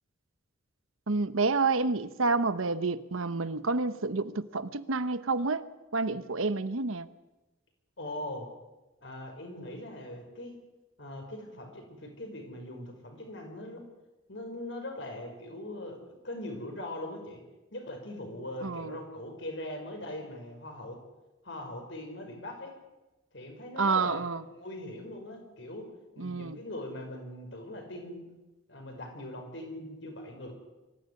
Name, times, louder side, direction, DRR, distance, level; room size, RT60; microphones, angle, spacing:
voice 1, 1.1-5.6 5.9-7.1 18.6-19.0 23.8-24.4 26.2-26.6, right 3 dB, 80° right, 13 dB, 1.0 m, -29 dB
voice 2, 8.0-8.5 9.0-10.6 11.0-13.8 14.3-16.0 16.2-17.4 17.7-21.0 21.4-22.8 23.3-25.9 26.2-28.3 28.7-30.5, left 1 dB, 60° left, 4 dB, 5.3 m, -41 dB
24.0 x 15.0 x 9.7 m, 1.1 s
head